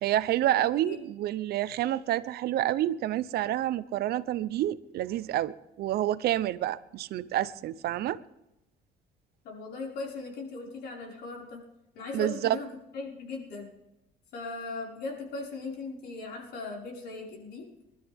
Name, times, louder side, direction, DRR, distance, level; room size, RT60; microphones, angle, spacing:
voice 1, 0.0-8.2 12.1-12.6, right 13 dB, 70° right, 0.7 m, -28 dB
voice 2, 0.5-1.0 9.4-11.6 11.9-12.7 12.9-13.7 14.3-17.7, left 3 dB, 75° left, 5.4 m, -38 dB
25.0 x 12.5 x 3.6 m
cardioid pair, 110°, 17 cm